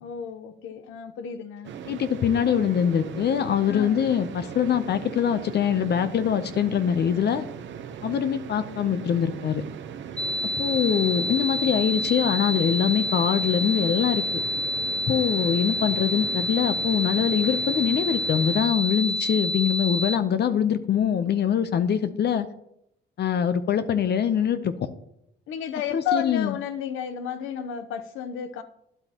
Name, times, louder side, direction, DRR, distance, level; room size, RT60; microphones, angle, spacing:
voice 1, 0.0-1.7 3.7-4.0 25.5-28.6, left 8 dB, 85° left, 0.8 m, -32 dB
sound 1, 1.6-18.7, right 8 dB, 70° right, 0.9 m, -39 dB
voice 2, 1.9-7.5 8.0-9.6 10.6-14.4 15.1-22.5 23.2-24.7 25.9-26.5, left 8 dB, 55° left, 0.7 m, -23 dB
sound 2, 10.2-20.2, left 1 dB, 5° left, 0.5 m, -28 dB
12.5 x 9.9 x 2.9 m
cardioid pair, 90°, 20 cm